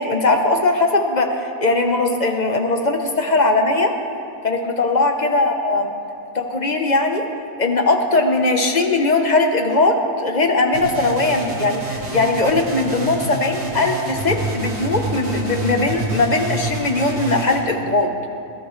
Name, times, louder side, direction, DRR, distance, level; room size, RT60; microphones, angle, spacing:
voice 1, 0.0-3.9 4.4-5.9 6.3-7.2 7.6-18.1, left 2 dB, 35° left, 4 dB, 1.0 m, -19 dB
sound 1, 10.7-17.6, right 2 dB, 75° right, 2.7 m, -28 dB
21.5 x 15.0 x 3.3 m, 2.5 s
omnidirectional pair, 1.6 m